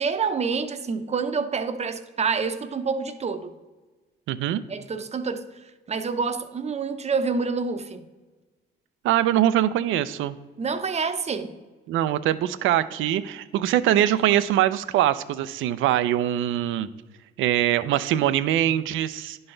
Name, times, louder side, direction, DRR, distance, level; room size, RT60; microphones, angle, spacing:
voice 1, 0.0-3.5 4.7-5.5 5.9-8.0 10.6-11.5, right 5 dB, 35° right, 0.6 m, -27 dB
voice 2, 4.3-4.6 9.0-10.3 11.9-16.9 17.4-19.4, right 12 dB, 85° right, 0.4 m, -23 dB
10.5 x 4.0 x 3.8 m
cardioid pair, 90°, 20 cm